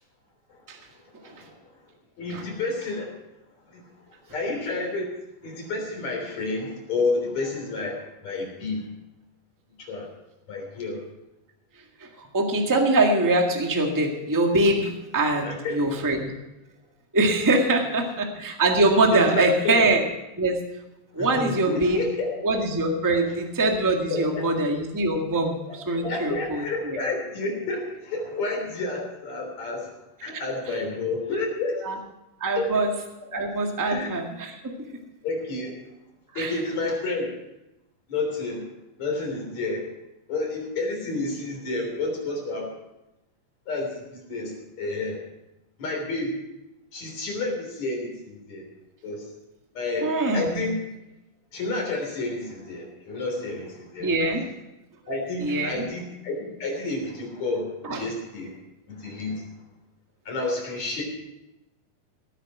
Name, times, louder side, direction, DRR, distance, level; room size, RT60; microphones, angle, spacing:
voice 1, 1.2-1.5 2.2-3.1 3.7-3.9 4.3-5.1 5.4-8.9 9.8-10.1 10.5-11.0 15.4-16.2 19.1-19.9 21.2-22.6 24.1-24.5 25.7-25.8 26.0-30.0 30.2-31.8 32.6-32.8 33.3-33.4 33.9-34.1 35.2-35.7 36.3-37.3 38.1-38.6 39.0-39.8 40.3-42.7 43.7-45.2 45.8-46.4 46.9-48.6 49.0-49.2 49.7-50.8 51.5-54.1 55.1-58.5 58.9-59.5 60.3-61.0, left 2 dB, 55° left, 1 dB, 4.7 m, -30 dB
voice 2, 12.3-16.3 17.1-20.0 20.4-20.6 21.1-22.0 22.4-27.0 31.8-31.9 32.4-32.9 33.3-34.6 36.3-36.6 50.0-50.6 54.0-54.4 55.4-55.8 57.8-58.0, right 2 dB, 15° right, 2 dB, 0.6 m, -23 dB
18.0 x 9.2 x 6.0 m, 0.94 s
omnidirectional pair, 4.0 m